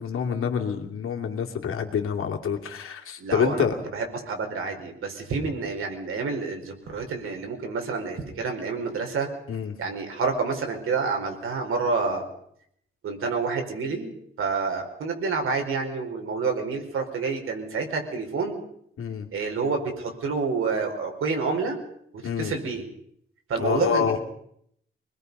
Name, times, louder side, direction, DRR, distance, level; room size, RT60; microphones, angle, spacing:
voice 1, 0.0-3.8 9.5-9.8 19.0-19.3 22.2-22.5 23.6-24.2, left 7 dB, 90° left, 3 dB, 2.7 m, -27 dB
voice 2, 3.2-3.6 3.9-9.3 9.8-12.3 13.0-14.1 14.4-18.6 19.3-21.8 22.1-22.8 23.5-24.2, right 4 dB, 80° right, 3 dB, 4.7 m, -28 dB
25.0 x 20.5 x 5.5 m, 0.70 s
wide cardioid pair, 170°, 21 cm